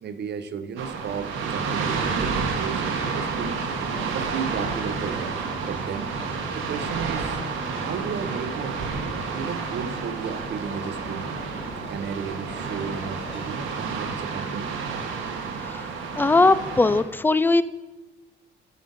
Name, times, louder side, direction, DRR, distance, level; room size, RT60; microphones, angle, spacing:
voice 1, 0.0-3.5 4.1-5.3 5.6-6.1 6.5-7.4 7.7-8.8 9.3-11.4 11.9-14.8, right 7 dB, 60° right, 11 dB, 0.8 m, -34 dB
sound 1, 0.8-17.0, right 5 dB, 85° right, 1.2 m, -30 dB
sound 2, 3.1-13.7, left 3 dB, 30° left, 0.8 m, -42 dB
voice 2, 16.2-17.6, left 3 dB, 10° left, 16 dB, 0.3 m, -19 dB
9.1 x 6.7 x 5.3 m, 1.1 s
cardioid pair, 90°, 20 cm